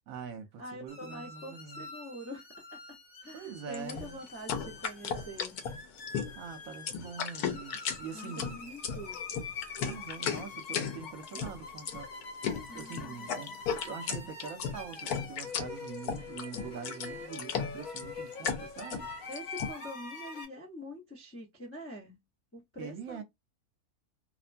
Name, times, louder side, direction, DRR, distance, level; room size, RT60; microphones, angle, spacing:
voice 1, 0.1-1.9 3.3-4.2 6.4-8.6 9.8-12.1 12.7-13.5 13.8-19.1 22.8-23.2, right 6 dB, 70° right, 1.0 m, -44 dB
voice 2, 0.6-2.5 2.7-3.0 3.2-5.6 8.1-9.2 12.7-13.6 19.3-22.2 22.5-23.2, equal, 20° left, 0.3 m, -45 dB
sound 1, 0.9-20.4, left 4 dB, 65° left, 1.3 m, -45 dB
sound 2, 3.7-19.7, left 7 dB, 80° left, 1.1 m, -35 dB
2.8 x 2.1 x 2.5 m
omnidirectional pair, 1.6 m